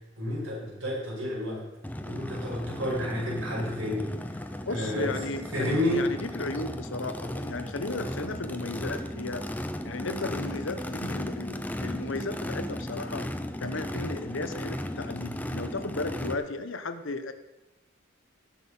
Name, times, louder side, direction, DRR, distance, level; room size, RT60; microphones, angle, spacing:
voice 1, 0.2-1.6 2.0-4.1 4.7-5.1 5.5-6.0, left 1 dB, 70° right, -4 dB, 5.7 m, -30 dB
Race car auto racing / Idling / Accelerating revving vroom, 1.8-16.3, left 1 dB, 10° left, 0.6 m, -36 dB
voice 2, 4.7-9.4 9.8-13.3 13.6-17.3, left 2 dB, 65° left, 9 dB, 1.0 m, -35 dB
18.0 x 6.5 x 5.6 m, 1.0 s
head